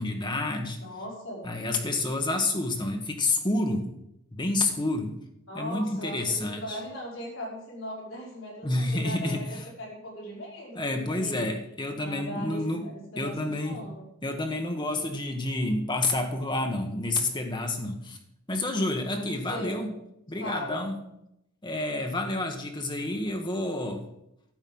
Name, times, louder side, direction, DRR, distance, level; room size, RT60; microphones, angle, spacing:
voice 1, 0.0-0.8 1.4-3.9 4.3-5.2 5.5-6.8 8.6-9.6 10.7-12.9 13.2-13.8 14.2-18.2 18.5-19.9 20.3-21.0 21.6-24.1, left 2 dB, 20° left, 4 dB, 1.3 m, -29 dB
voice 2, 0.8-1.4 5.5-11.5 12.0-14.1 19.1-19.8 20.4-20.8, equal, 65° left, -3 dB, 5.2 m, -39 dB
12.0 x 8.2 x 5.5 m, 0.82 s
head